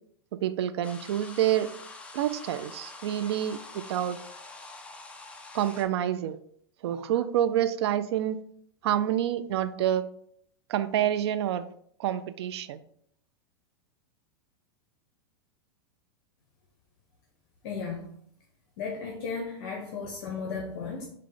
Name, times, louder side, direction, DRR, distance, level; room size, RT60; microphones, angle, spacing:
voice 1, 0.3-1.7 2.1-3.6 3.9-4.2 5.5-6.4 6.8-8.4 8.8-10.0 10.7-11.7 12.0-12.8, right 11 dB, 75° right, 13 dB, 0.4 m, -27 dB
sound 1, 0.8-5.8, left 3 dB, 10° left, 0.4 m, -45 dB
voice 2, 17.6-18.2 18.8-21.1, left 5 dB, 55° left, 0 dB, 0.9 m, -35 dB
5.0 x 2.2 x 3.8 m, 0.67 s
supercardioid pair, 140°, 14 cm